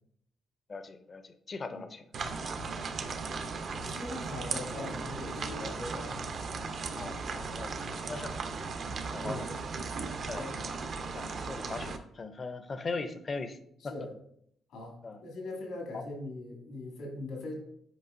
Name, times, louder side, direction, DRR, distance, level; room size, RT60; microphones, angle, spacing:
voice 1, 0.7-2.1 2.5-2.6 7.0-7.8 8.1-8.6 9.1-9.5 10.3-10.8 11.1-13.6 13.8-13.9 15.0-15.2 15.9-16.0, left 4 dB, 40° left, 10 dB, 0.5 m, -40 dB
sound 1, 2.1-12.0, right 4 dB, 55° right, 0.6 m, -37 dB
voice 2, 3.9-6.2 9.2-9.6 10.2-10.5 13.9-14.1 14.7-17.5, left 2 dB, 85° left, -1 dB, 2.3 m, -41 dB
8.0 x 5.0 x 2.5 m, 0.70 s
cardioid pair, 90°, 0 cm